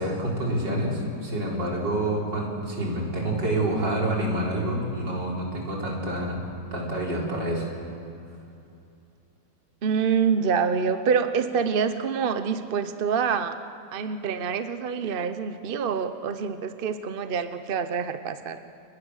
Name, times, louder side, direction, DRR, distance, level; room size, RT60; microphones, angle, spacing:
voice 1, 0.0-7.7, right 1 dB, 70° right, -2 dB, 5.0 m, -27 dB
voice 2, 9.8-13.6 13.9-18.6, right 6 dB, 45° right, 10 dB, 0.8 m, -26 dB
29.5 x 22.5 x 6.5 m, 2.7 s
omnidirectional pair, 2.0 m